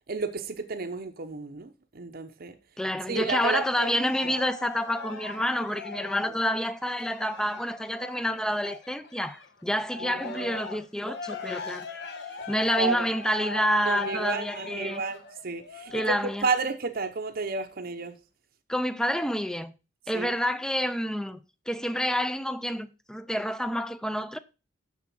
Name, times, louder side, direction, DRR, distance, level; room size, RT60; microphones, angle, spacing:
voice 1, 0.1-2.6 3.1-4.3 6.2-6.3 10.0-10.6 12.8-13.1 13.8-18.2 20.1-20.3, right 4 dB, 50° right, 0.8 m, -32 dB
voice 2, 2.8-11.9 12.5-15.0 15.9-16.4 18.7-19.7 20.1-21.4 21.7-24.4, equal, 5° left, 0.5 m, -28 dB
Cheering, 3.2-9.5 9.9-16.5 17.1-17.2, left 3 dB, 60° left, 1.2 m, -40 dB
7.1 x 6.3 x 6.0 m
head